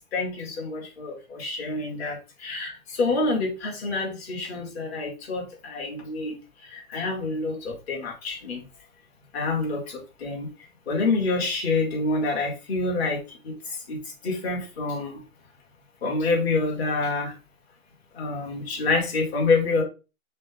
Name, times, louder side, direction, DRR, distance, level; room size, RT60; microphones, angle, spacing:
voice 1, 0.1-8.6 9.3-10.5 10.9-13.2 13.4-15.2 16.0-17.3 18.1-19.8, left 3 dB, 45° left, -1 dB, 1.9 m, -27 dB
5.0 x 2.3 x 3.5 m, 0.30 s
hypercardioid pair, 160°, 42 cm